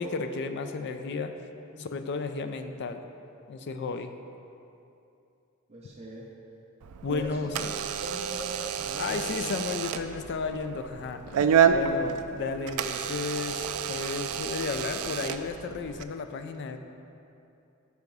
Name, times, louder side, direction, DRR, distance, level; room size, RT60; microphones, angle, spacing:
voice 1, 0.0-1.3 1.8-3.0 3.5-4.1 7.0-7.7 9.0-16.8, left 4 dB, 55° left, 8 dB, 0.4 m, -33 dB
voice 2, 5.7-6.3 7.1-7.7 8.0-9.5 11.9-12.0, equal, 30° right, -3 dB, 0.5 m, -40 dB
Door / Alarm, 6.8-16.0, right 7 dB, 85° right, 0.3 m, -29 dB
5.7 x 4.7 x 5.3 m, 2.7 s
head